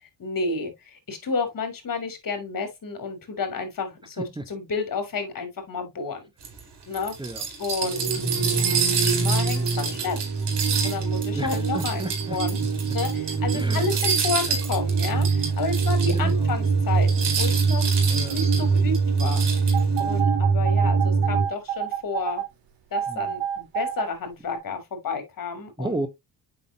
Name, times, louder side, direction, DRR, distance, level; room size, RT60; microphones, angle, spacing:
voice 1, 0.2-6.2 6.9-7.1 7.6-10.2 10.8-12.6 12.9-17.9 18.3-19.4 19.7-22.4 22.9-26.0, left 4 dB, 50° left, 3.2 m, -31 dB
sound 1, 6.4-16.3 16.6-16.7 17.0-20.0, right 6 dB, 65° right, 4.1 m, -29 dB
sound 2, 7.8-21.4, right 4 dB, 45° right, 2.6 m, -24 dB
voice 2, 11.3-13.0 13.5-14.0 16.1-16.5 18.1-18.4 23.1-23.2 25.8-26.1, right 1 dB, 10° right, 1.0 m, -33 dB
sound 3, 19.7-22.5 22.9-24.1 24.5-24.6, right 10 dB, 85° right, 2.4 m, -28 dB
7.7 x 5.8 x 2.9 m
cardioid pair, 85°, 44 cm